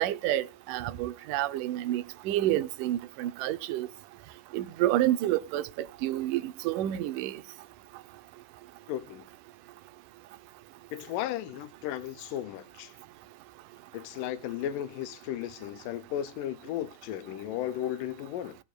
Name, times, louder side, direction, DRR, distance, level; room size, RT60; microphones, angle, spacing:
voice 1, 0.0-3.9 4.5-7.4, right 13 dB, 85° right, 2.3 m, -29 dB
voice 2, 8.9-9.2 10.9-12.9 13.9-18.6, left 12 dB, 85° left, 2.3 m, -35 dB
18.5 x 7.2 x 2.3 m
omnidirectional pair, 3.7 m